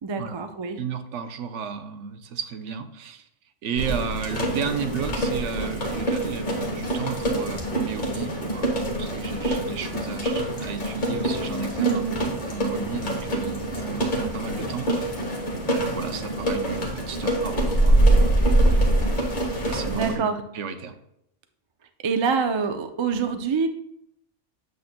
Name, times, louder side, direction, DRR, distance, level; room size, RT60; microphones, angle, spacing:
voice 1, 0.0-0.8 11.8-12.2 19.6-20.4 22.0-23.7, right 5 dB, 45° right, 7 dB, 0.3 m, -26 dB
voice 2, 0.8-3.3 3.6-12.0 12.5-15.1 15.7-19.1 19.7-20.3 20.5-20.9, right 6 dB, 80° right, 8 dB, 1.0 m, -33 dB
sound 1, 3.8-20.1, right 1 dB, 40° left, 1.4 m, -25 dB
sound 2, 11.0-12.6, left 9 dB, 75° left, 0.3 m, -38 dB
7.9 x 6.7 x 2.2 m, 0.77 s
omnidirectional pair, 1.2 m